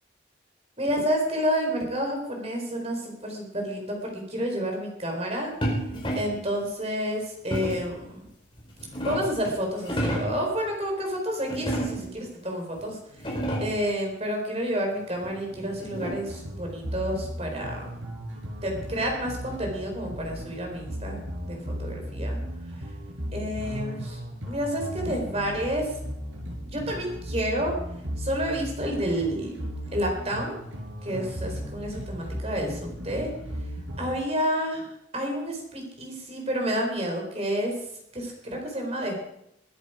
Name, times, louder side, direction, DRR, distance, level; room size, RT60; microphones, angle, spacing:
voice 1, 0.8-5.5 6.2-8.2 9.0-17.9 18.6-22.4 23.3-24.2 24.5-26.0 26.7-27.7 28.2-30.6 31.0-33.3 34.0-37.7 38.1-39.1, equal, 30° right, 2 dB, 4.4 m, -30 dB
sound 1, 5.6-6.4 7.5-7.9 8.6-9.4 9.8-10.4 11.5-12.2 12.8-12.9 13.1-13.9 15.2-16.4, equal, 25° left, 4.7 m, -30 dB
sound 2, 16.3-34.1, equal, 85° right, 4.9 m, -36 dB
21.5 x 10.0 x 5.1 m, 0.81 s
head